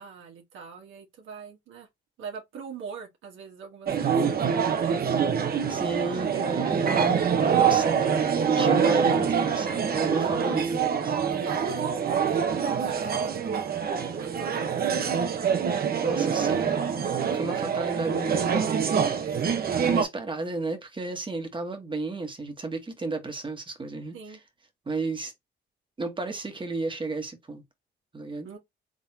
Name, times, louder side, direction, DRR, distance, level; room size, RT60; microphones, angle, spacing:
voice 1, 0.0-1.9 2.2-5.2 10.3-10.9 11.2-15.2 16.2-16.7 19.2-19.6 24.1-24.4 28.4-28.6, right 5 dB, 80° right, 1.4 m, -43 dB
sound 1, 3.9-20.0, right 7 dB, 50° right, 1.0 m, -25 dB
voice 2, 5.7-7.2 7.6-8.1 8.5-11.1 16.0-16.8 17.3-18.7 19.9-24.4 24.9-25.3 26.0-27.6 28.1-28.5, right 2 dB, 25° right, 1.3 m, -32 dB
3.7 x 3.6 x 2.8 m
cardioid pair, 90°, 20 cm